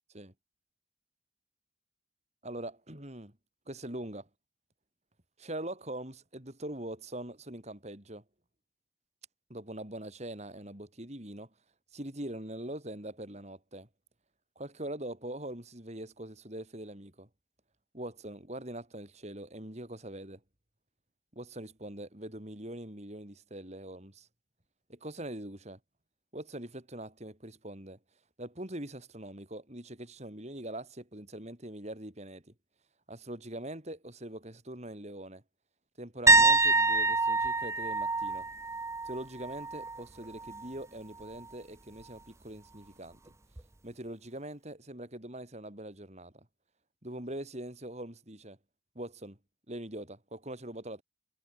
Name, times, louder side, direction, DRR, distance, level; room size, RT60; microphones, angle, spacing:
voice 1, 2.4-3.3 3.7-4.3 5.4-8.2 9.5-11.5 11.9-13.9 14.6-17.3 17.9-20.4 21.3-24.3 24.9-25.8 26.3-28.0 28.4-32.4 33.1-35.4 36.0-38.5 39.0-43.2 43.8-46.5 47.0-48.6 49.0-49.4 49.7-51.0, right 1 dB, 35° right, 4.0 m, -42 dB
sound 1, 36.3-40.0 40.3-40.7 43.6-43.7, right 3 dB, 15° right, 0.6 m, -26 dB
head